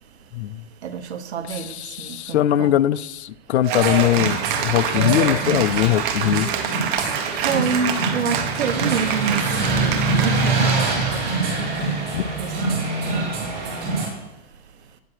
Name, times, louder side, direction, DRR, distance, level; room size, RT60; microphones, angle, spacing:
voice 1, 0.8-2.8 7.4-11.7 12.4-12.5 13.1-13.6, right 6 dB, 80° right, 1.1 m, -28 dB
voice 2, 1.8-6.5 12.1-12.3, left 12 dB, 80° left, 0.5 m, -21 dB
Cheering / Applause, 3.6-11.2, right 7 dB, 50° right, 1.3 m, -26 dB
sound 1, 3.7-14.1, right 3 dB, 30° right, 3.5 m, -25 dB
9.2 x 7.6 x 4.5 m
hypercardioid pair, 130°, 33 cm